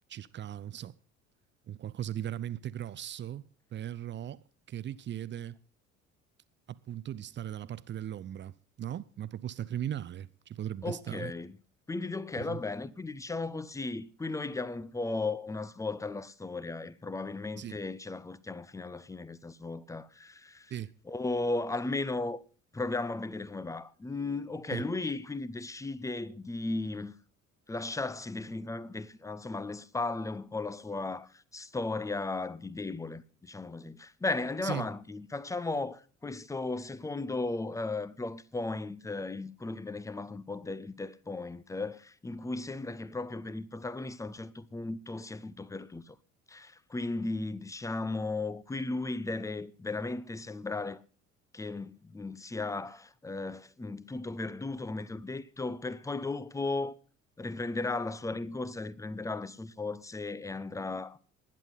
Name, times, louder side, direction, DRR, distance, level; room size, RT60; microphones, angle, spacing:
voice 1, 0.1-1.0 1.7-3.4 3.7-4.4 4.7-5.6 6.7-8.5 8.8-11.3 12.4-12.6 17.6-17.8 20.7-20.9 24.7-24.8 34.6-34.9, right 11 dB, 30° right, 0.6 m, -38 dB
voice 2, 10.8-11.5 11.9-20.7 21.1-22.4 22.7-27.1 27.7-46.2 46.5-51.0 51.5-56.9 57.4-61.2, left 3 dB, 10° left, 0.7 m, -36 dB
19.0 x 10.5 x 4.0 m
figure-of-eight pair, 60°, 40 cm